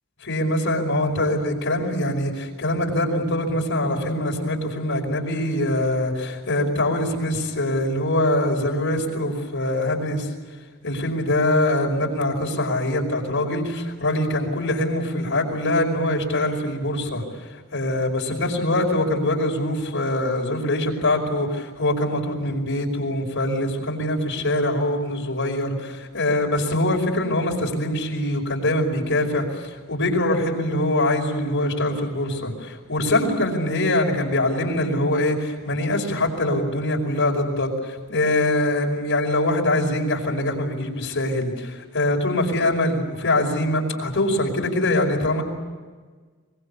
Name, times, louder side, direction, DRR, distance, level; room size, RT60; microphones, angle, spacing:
voice 1, 0.2-10.3 10.8-17.2 17.5-45.4, left 1 dB, 60° left, 1 dB, 5.3 m, -23 dB
24.5 x 22.5 x 8.5 m, 1.4 s
head